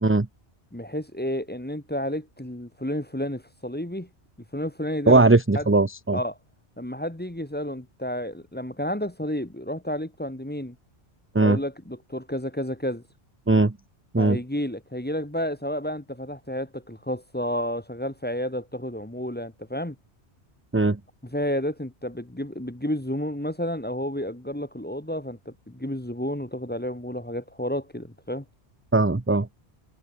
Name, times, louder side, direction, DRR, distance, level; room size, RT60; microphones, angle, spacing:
voice 1, 0.7-4.1 4.5-5.3 5.5-5.6 6.1-6.4 6.8-10.7 11.4-13.0 14.2-19.9 21.2-28.4, equal, 10° left, 1.5 m, -31 dB
voice 2, 5.1-6.2 11.3-11.6 13.5-13.7 14.1-14.4 20.7-21.0 28.9-29.5, right 3 dB, 15° right, 0.6 m, -19 dB
omnidirectional pair, 1.1 m